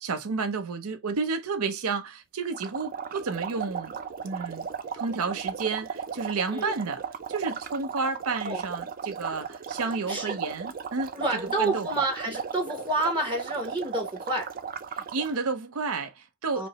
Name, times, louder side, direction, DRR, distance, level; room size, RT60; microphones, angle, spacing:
voice 1, 0.0-4.0 4.2-4.7 4.9-7.0 7.3-11.1 11.6-11.9 14.9-16.7, right 4 dB, 85° right, 0.6 m, -31 dB
sound 1, 2.5-15.4, right 7 dB, 40° right, 0.4 m, -36 dB
voice 2, 11.1-14.5 16.5-16.7, right 2 dB, 20° right, 0.8 m, -29 dB
5.1 x 2.0 x 2.8 m
head